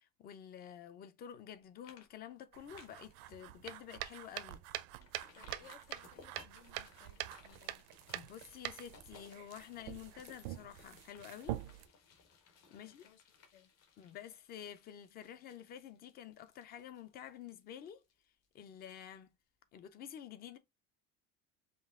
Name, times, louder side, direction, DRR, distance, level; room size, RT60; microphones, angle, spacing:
voice 1, 0.0-4.6 8.1-11.6 12.7-13.1 14.0-18.0 18.5-19.3 19.7-20.6, left 9 dB, 30° left, 0.5 m, -50 dB
sound 1, 1.3-1.5 1.8-2.1 2.4-3.1 3.6-3.7 4.1-4.2 5.0-18.5 18.8-18.9, left 5 dB, 50° left, 1.4 m, -62 dB
sound 2, 2.5-11.9, right 15 dB, 75° right, 0.6 m, -45 dB
voice 2, 5.3-7.8 12.7-13.7, left 8 dB, 70° left, 1.1 m, -63 dB
5.3 x 2.4 x 3.5 m
cardioid pair, 175°, 33 cm